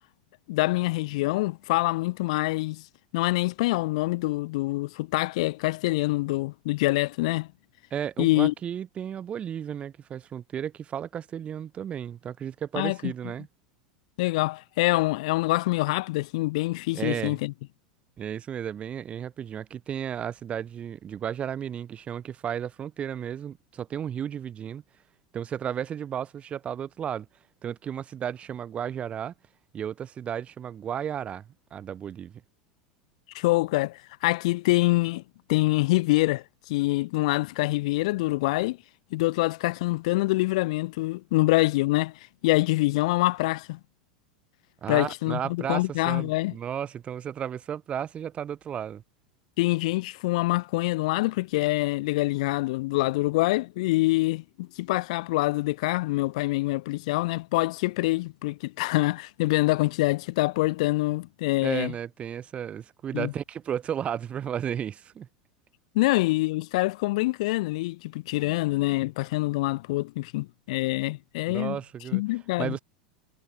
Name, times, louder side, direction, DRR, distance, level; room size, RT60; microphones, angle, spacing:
voice 1, 0.5-2.8 3.1-7.5 8.2-8.5 12.7-13.1 14.2-17.5 33.3-35.2 35.5-38.8 39.1-42.1 42.4-43.8 44.9-46.5 49.6-61.9 63.1-63.3 65.9-71.8 72.1-72.8, left 20 dB, 60° left, 2.0 m, -25 dB
voice 2, 7.9-13.5 16.9-17.4 18.2-24.8 25.3-27.3 27.6-29.3 29.7-32.4 44.8-49.0 61.6-65.3 71.5-72.2 72.6-72.8, right 9 dB, 30° right, 5.1 m, -33 dB
figure-of-eight pair, 85°, 4 cm